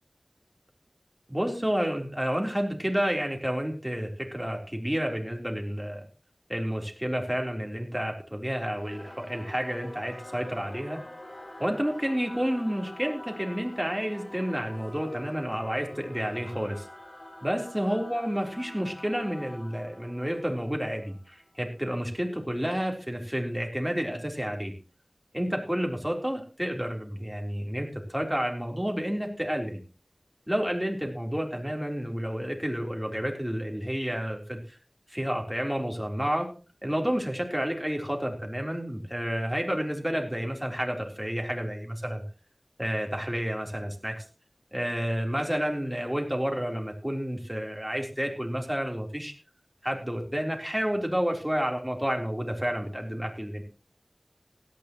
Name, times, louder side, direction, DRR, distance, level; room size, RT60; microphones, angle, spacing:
voice 1, 1.3-6.1 6.5-11.0 11.6-16.9 17.4-24.7 25.3-29.8 30.5-34.8 35.1-36.5 36.8-42.2 42.8-44.2 44.7-49.3 49.8-53.6, equal, 10° right, 1 dB, 3.8 m, -30 dB
Singing / Musical instrument, 8.7-21.6, left 1 dB, 60° left, 6.6 m, -46 dB
17.0 x 13.0 x 3.1 m, 0.36 s
wide cardioid pair, 45°, 0 cm